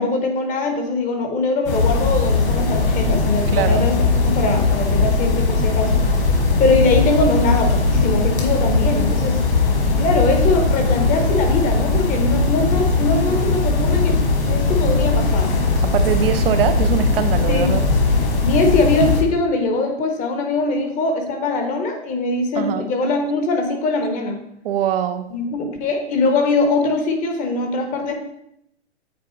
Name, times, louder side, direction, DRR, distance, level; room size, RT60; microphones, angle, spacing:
voice 1, 0.0-5.9 6.6-9.4 10.0-14.2 14.5-15.5 17.5-17.7 18.4-24.4 25.3-28.1, left 3 dB, 25° left, 0.8 m, -21 dB
sound 1, 1.7-19.2, left 3 dB, 55° left, 1.8 m, -19 dB
voice 2, 3.5-3.9 15.8-17.9 22.6-22.9 24.6-25.3, right 10 dB, 55° right, 0.5 m, -22 dB
8.4 x 3.7 x 3.0 m
hypercardioid pair, 130°, 34 cm